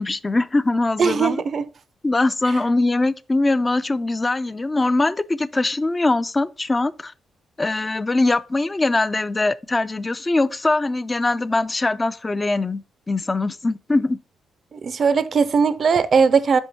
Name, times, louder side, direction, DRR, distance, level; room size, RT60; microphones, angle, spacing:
voice 1, 0.0-1.4 2.0-7.1 7.6-14.2, left 2 dB, 25° left, 0.3 m, -22 dB
voice 2, 1.0-1.7 14.7-16.6, right 5 dB, 50° right, 0.4 m, -19 dB
5.3 x 4.5 x 4.1 m
cardioid pair, 85°, 0 cm